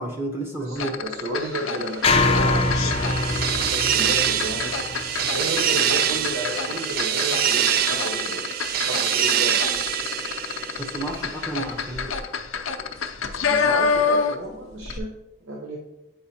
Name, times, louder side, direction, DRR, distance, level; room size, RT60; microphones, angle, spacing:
voice 1, 0.0-1.0 10.8-12.2, right 2 dB, 10° right, 0 dB, 0.8 m, -31 dB
voice 2, 0.6-2.7 3.5-4.8 5.3-8.5 8.8-9.6 13.3-15.1 15.4-15.8, right 1 dB, 75° right, -2 dB, 0.9 m, -32 dB
sound 1, 0.8-14.5 14.8-15.0, left 5 dB, 90° left, 0.6 m, -27 dB
sound 2, 2.0-6.3, left 2 dB, 30° left, 0.5 m, -24 dB
sound 3, 2.2-11.3, right 9 dB, 45° right, 0.3 m, -25 dB
8.6 x 5.2 x 2.9 m, 0.92 s
head